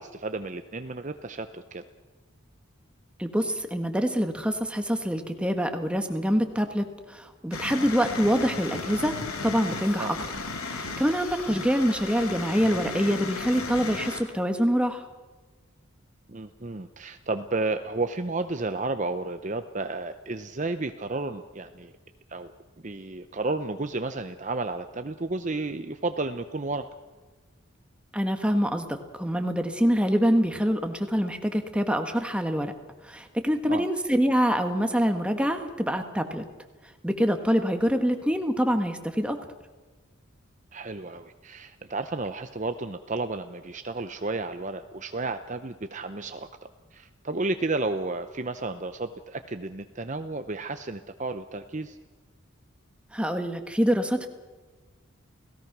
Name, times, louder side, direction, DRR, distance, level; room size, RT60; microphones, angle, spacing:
voice 1, 0.0-1.8 10.0-10.1 11.5-11.7 16.3-21.9 22.3-22.5 22.8-26.9 33.7-33.9 40.7-46.5 46.9-52.0, right 3 dB, 35° right, 9 dB, 0.7 m, -32 dB
voice 2, 3.2-9.2 9.4-10.2 10.6-15.1 28.1-32.7 33.0-36.4 37.0-39.4 53.1-54.3, equal, 5° right, 6 dB, 1.5 m, -25 dB
sound 1, 7.5-14.2, left 3 dB, 85° left, 3.1 m, -35 dB
30.0 x 18.0 x 6.1 m, 1.3 s
head